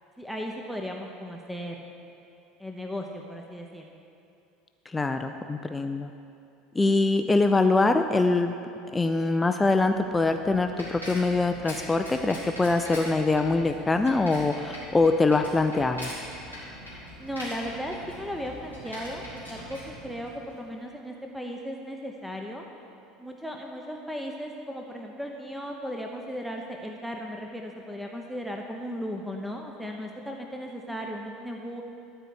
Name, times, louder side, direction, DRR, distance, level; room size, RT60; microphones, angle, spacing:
voice 1, 0.2-1.8 2.6-3.8 7.2-7.6 17.2-22.6 23.2-31.8, equal, ahead, 1 dB, 0.8 m, -36 dB
voice 2, 4.9-6.1 6.8-8.5 8.9-16.1, left 3 dB, 15° left, 7 dB, 0.5 m, -23 dB
Bicycle, 9.8-20.7, equal, 90° right, 2.8 m, -42 dB
13.0 x 4.6 x 8.3 m, 2.7 s
figure-of-eight pair, 70°, 0 cm